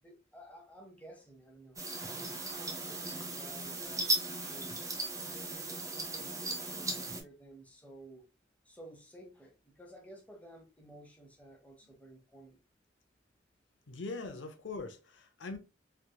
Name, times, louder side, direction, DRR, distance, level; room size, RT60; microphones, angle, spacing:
voice 1, 0.0-1.8 2.1-4.2 4.5-5.0 5.3-8.2 8.6-12.6, right 1 dB, 10° left, 0.9 m, -54 dB
sound 1, 1.8-7.2, right 2 dB, 20° right, 0.7 m, -37 dB
voice 2, 13.9-15.6, left 3 dB, 80° left, 0.6 m, -41 dB
3.3 x 2.9 x 2.2 m
head